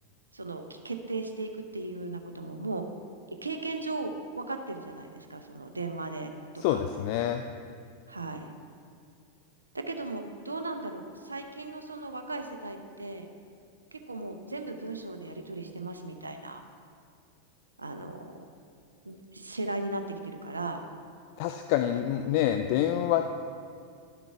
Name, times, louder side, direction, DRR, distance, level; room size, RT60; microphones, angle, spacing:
voice 1, 0.3-2.9 3.4-6.8 8.1-8.5 9.7-13.3 13.9-16.6 17.8-18.4 19.0-20.8, right 2 dB, 80° right, 6 dB, 0.6 m, -37 dB
voice 2, 6.6-7.4 21.4-23.2, left 11 dB, 45° left, 7 dB, 0.3 m, -27 dB
12.0 x 6.0 x 3.4 m, 2.3 s
figure-of-eight pair, 90°, 0 cm